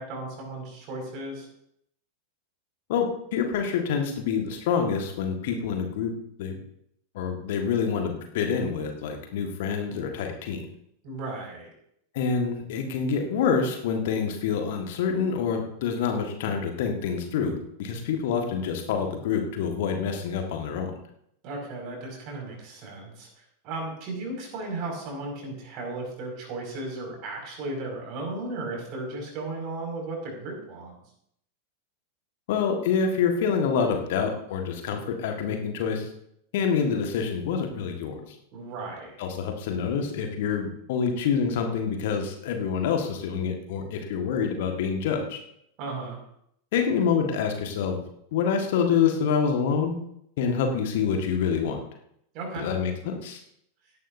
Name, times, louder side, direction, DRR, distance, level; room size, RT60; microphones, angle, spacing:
voice 1, 0.0-1.5 11.0-11.7 21.4-23.3 23.6-31.0 38.5-39.2 45.8-46.2 52.3-52.7, right 2 dB, 40° right, 0 dB, 5.9 m, -35 dB
voice 2, 2.9-6.1 6.4-6.6 7.1-10.6 12.1-20.9 32.5-36.1 36.5-38.2 39.2-45.4 46.7-48.0 48.3-49.9 50.4-51.8 52.6-53.4, left 6 dB, 55° left, 4 dB, 1.7 m, -27 dB
17.5 x 11.0 x 2.7 m, 0.71 s
figure-of-eight pair, 90°, 0 cm